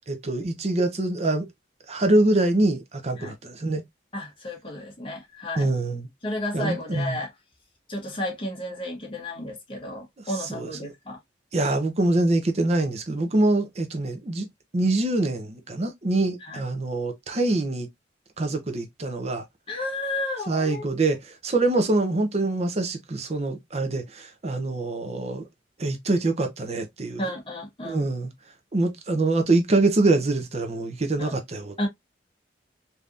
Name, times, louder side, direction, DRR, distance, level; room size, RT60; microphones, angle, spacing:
voice 1, 0.1-1.5 1.9-3.8 5.6-6.1 6.5-7.2 10.2-10.9 11.5-14.5 14.7-17.9 18.4-19.4 20.5-25.5 25.8-27.3 27.8-28.3 28.7-31.9, right 2 dB, 35° right, 0.6 m, -24 dB
voice 2, 4.1-5.7 6.2-7.3 7.9-11.2 16.5-16.6 19.7-20.9 27.2-28.0 31.2-31.4 31.8-31.9, left 1 dB, 30° left, 1.2 m, -32 dB
3.4 x 2.7 x 2.4 m
head